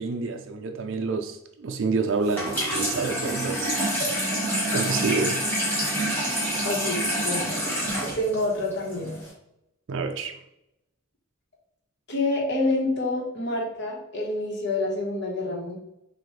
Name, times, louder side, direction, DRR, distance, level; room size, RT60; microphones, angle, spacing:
voice 1, 0.0-3.7 4.7-5.5 9.9-10.4, right 4 dB, 60° right, 5 dB, 0.4 m, -28 dB
Water tap faucet / Sink (filling or washing), 2.2-9.3, equal, 10° left, 1.5 m, -27 dB
voice 2, 6.6-7.6 8.0-9.2 12.1-15.8, left 2 dB, 55° left, -2 dB, 1.2 m, -27 dB
6.4 x 2.5 x 3.2 m, 0.83 s
head